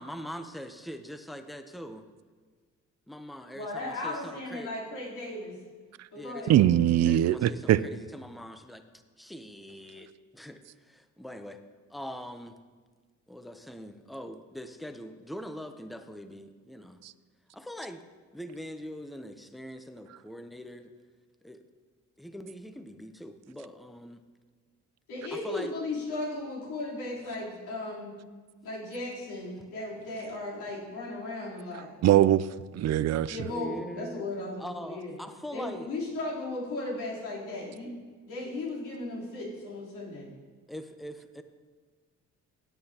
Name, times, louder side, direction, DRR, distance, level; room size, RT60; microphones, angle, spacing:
voice 1, 0.0-2.0 3.1-4.7 6.1-6.7 7.0-8.8 9.2-11.6 11.9-12.6 13.3-17.0 17.5-18.1 18.3-20.9 21.4-21.6 22.2-24.2 25.3-25.7 33.3-34.2 34.6-35.9 40.7-41.4, equal, ahead, 8 dB, 0.7 m, -42 dB
voice 2, 3.5-5.6 6.1-6.6 25.1-28.2 28.6-31.9 33.3-35.1 35.5-37.9 38.3-40.3, left 2 dB, 85° left, -6 dB, 3.6 m, -36 dB
voice 3, 6.5-7.8 32.0-32.5 32.7-33.4, right 12 dB, 60° right, 17 dB, 0.5 m, -21 dB
16.0 x 8.9 x 2.9 m, 1.5 s
cardioid pair, 90°, 30 cm